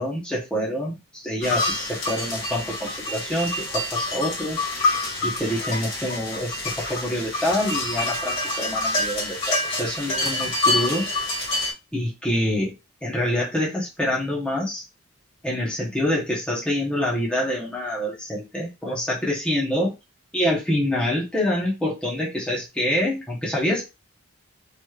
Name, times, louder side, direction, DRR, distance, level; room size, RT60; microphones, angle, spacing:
voice 1, 0.0-4.9 5.2-11.0 11.9-12.7 13.0-14.8 15.4-19.9 20.3-23.9, left 1 dB, 5° left, -5 dB, 0.8 m, -26 dB
sound 1, 1.4-11.7, left 2 dB, 70° left, 1.5 m, -27 dB
3.1 x 3.0 x 2.3 m, 0.25 s
head